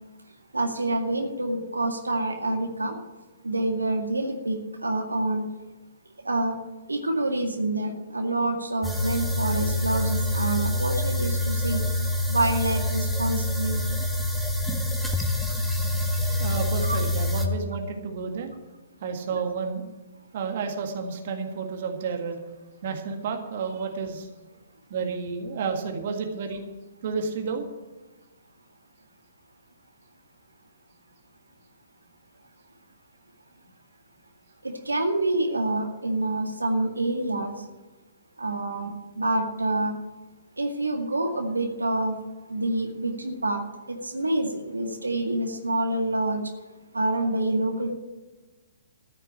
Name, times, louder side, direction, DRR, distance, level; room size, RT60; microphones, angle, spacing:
voice 1, 0.5-3.0 3.4-5.5 6.2-6.6 6.9-11.8 12.3-13.8 16.9-17.0 34.6-37.6 38.4-40.0 40.6-42.2 42.5-43.6 43.9-46.5 46.9-47.9, right 2 dB, 85° right, 3 dB, 2.0 m, -27 dB
sound 1, 8.8-17.5, left 1 dB, ahead, 1.4 m, -26 dB
voice 2, 16.4-18.5 19.0-19.8 20.3-22.4 22.8-24.3 24.9-26.6 27.0-27.7, right 5 dB, 50° right, 4 dB, 1.8 m, -31 dB
14.5 x 6.6 x 8.8 m, 1.2 s
figure-of-eight pair, 120°, 0 cm